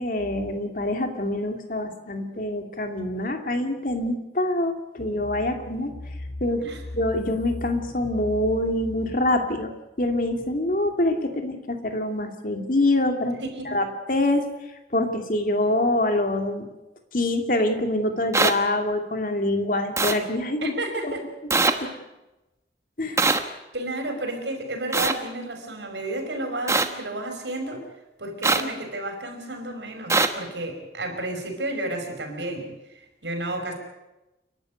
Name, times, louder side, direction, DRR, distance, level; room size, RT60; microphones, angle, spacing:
voice 1, 0.0-5.9 6.4-6.6 6.9-9.7 10.0-13.4 13.6-14.5 14.9-16.7 17.1-20.7 21.0-21.5 21.8-21.9 23.0-23.2, left 1 dB, 50° left, 5 dB, 2.5 m, -25 dB
sound 1, 5.0-9.2, left 1 dB, 65° left, 3.1 m, -38 dB
voice 2, 13.4-13.9 20.6-21.3 21.7-22.0 23.7-27.8 28.2-32.7 33.2-33.7, right 2 dB, 80° right, 3 dB, 5.5 m, -32 dB
sound 2, 18.3-18.5 20.0-20.1 21.5-21.7 23.2-23.4 24.9-25.1 26.7-26.9 28.4-28.6 30.1-30.3, right 3 dB, 15° right, 1.2 m, -20 dB
30.0 x 12.0 x 9.4 m, 1.0 s
head